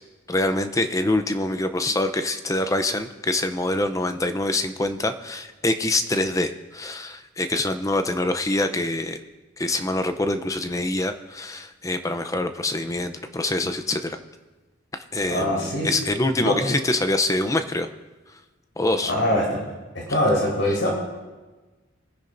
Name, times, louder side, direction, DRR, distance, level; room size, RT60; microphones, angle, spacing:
voice 1, 0.3-9.2 9.6-14.2 14.9-17.9 18.8-19.1 20.1-20.2, left 2 dB, 15° left, 9 dB, 0.6 m, -25 dB
voice 2, 15.3-15.9 16.4-16.6 19.1-19.6 19.9-20.9, left 1 dB, 65° left, -3 dB, 4.4 m, -23 dB
22.5 x 10.0 x 2.6 m, 1.2 s
head